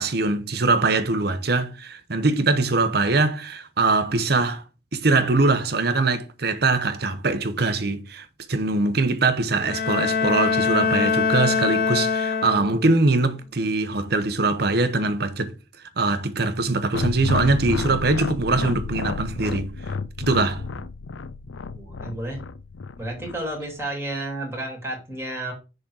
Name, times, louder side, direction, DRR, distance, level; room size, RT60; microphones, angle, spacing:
voice 1, 0.0-4.6 4.9-15.5 16.0-19.7 20.2-20.6, right 3 dB, 55° right, 1.0 m, -22 dB
Bowed string instrument, 9.6-13.0, left 5 dB, 50° left, 0.7 m, -23 dB
sound 1, 16.9-23.4, left 4 dB, 90° left, 0.5 m, -31 dB
voice 2, 21.7-22.4 23.0-25.5, right 1 dB, 15° right, 2.9 m, -32 dB
6.5 x 3.9 x 6.3 m
head